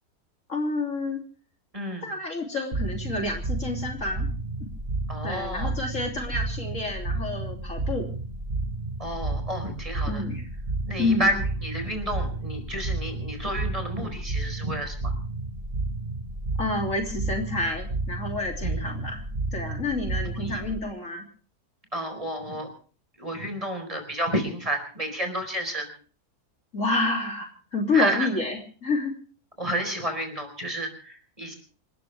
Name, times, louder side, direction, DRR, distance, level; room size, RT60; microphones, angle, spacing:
voice 1, 0.5-1.2 2.0-4.3 5.2-8.1 10.1-10.4 11.0-11.3 16.6-19.2 19.5-21.2 26.7-27.5 27.7-29.1, left 3 dB, 50° left, 2 dB, 3.5 m, -29 dB
voice 2, 1.7-2.1 5.1-5.7 9.0-10.2 10.9-15.1 18.6-18.8 20.4-20.6 21.9-22.7 23.2-25.9 27.9-28.3 29.6-31.6, right 1 dB, 20° right, 5 dB, 4.8 m, -30 dB
sound 1, 2.7-20.8, right 2 dB, 35° right, 1.8 m, -31 dB
28.0 x 13.5 x 3.5 m, 0.41 s
omnidirectional pair, 1.7 m